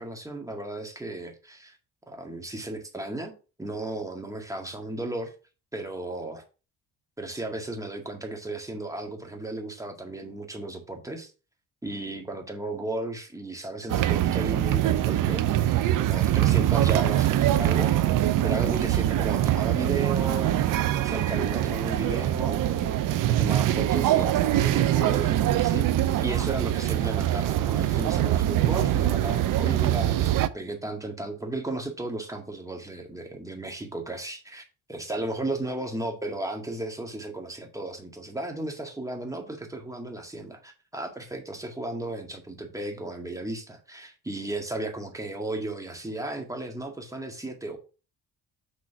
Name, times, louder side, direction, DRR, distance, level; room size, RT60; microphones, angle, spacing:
voice 1, 0.0-1.8 2.1-3.3 3.6-5.3 5.7-6.4 7.2-11.3 11.8-34.6 34.9-47.8, right 2 dB, 10° right, 1.8 m, -35 dB
sound 1, 13.9-30.5, right 13 dB, 65° right, 0.6 m, -23 dB
6.4 x 3.8 x 5.9 m
cardioid pair, 100°, 35 cm